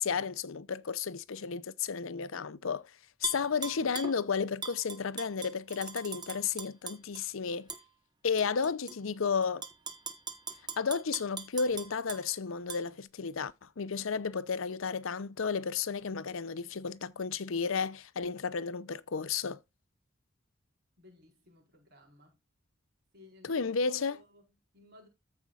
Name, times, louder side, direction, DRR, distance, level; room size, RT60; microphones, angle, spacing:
voice 1, 0.0-2.9 3.2-7.7 8.2-9.7 10.8-19.6 23.4-24.2, left 5 dB, 70° left, 0.6 m, -33 dB
Tap / Glass, 3.2-4.2 4.6-7.2 7.7-7.8 8.4-8.9 9.4-12.2 12.7-12.8, right 5 dB, 20° right, 1.2 m, -40 dB
voice 2, 21.0-22.4 23.1-25.1, left 2 dB, 50° right, 4.6 m, -59 dB
14.5 x 5.3 x 2.4 m
head